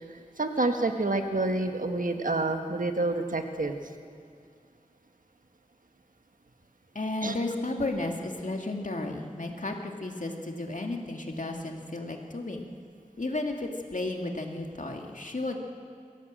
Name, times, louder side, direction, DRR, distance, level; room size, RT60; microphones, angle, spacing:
voice 1, 0.4-3.8 7.2-7.3, right 2 dB, 75° right, 5 dB, 1.5 m, -28 dB
voice 2, 6.9-12.6 13.2-15.6, left 2 dB, 65° left, 2 dB, 2.2 m, -33 dB
22.5 x 16.5 x 7.7 m, 2.2 s
wide cardioid pair, 55°, 14 cm